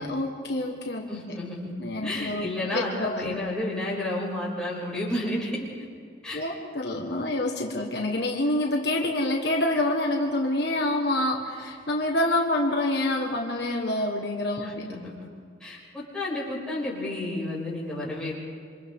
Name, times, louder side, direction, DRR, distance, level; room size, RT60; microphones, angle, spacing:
voice 1, 0.0-1.1 1.8-3.4 6.3-14.9, left 1 dB, 60° left, 1 dB, 1.6 m, -27 dB
voice 2, 1.1-1.7 2.0-5.7 6.2-6.4 14.6-15.1 15.6-18.3, left 1 dB, 5° left, -7 dB, 6.3 m, -31 dB
28.0 x 25.5 x 3.8 m, 2.3 s
head